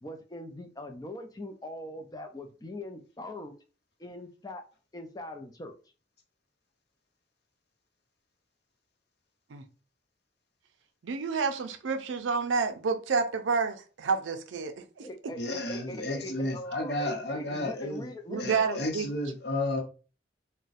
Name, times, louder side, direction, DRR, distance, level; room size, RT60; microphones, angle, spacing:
voice 1, 0.0-3.5 4.0-4.6 4.9-5.7 15.0-18.8, left 1 dB, 20° left, 0.4 m, -41 dB
voice 2, 11.0-15.3 18.3-19.1, right 5 dB, 85° right, 0.4 m, -29 dB
voice 3, 15.4-18.1 18.4-19.8, left 1 dB, 60° left, 0.8 m, -32 dB
2.5 x 2.1 x 3.9 m
head